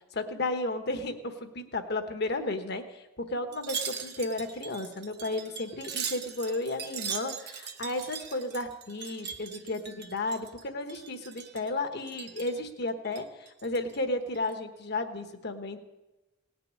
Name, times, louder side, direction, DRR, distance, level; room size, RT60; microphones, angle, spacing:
voice 1, 0.1-13.3 13.6-15.8, left 2 dB, 55° left, 7 dB, 1.3 m, -33 dB
Wind chime, 3.5-10.6 10.9-11.7 12.1-12.6 13.1-14.0 14.4-14.5, right 7 dB, 55° right, 1.1 m, -40 dB
18.0 x 6.8 x 9.6 m, 1.1 s
head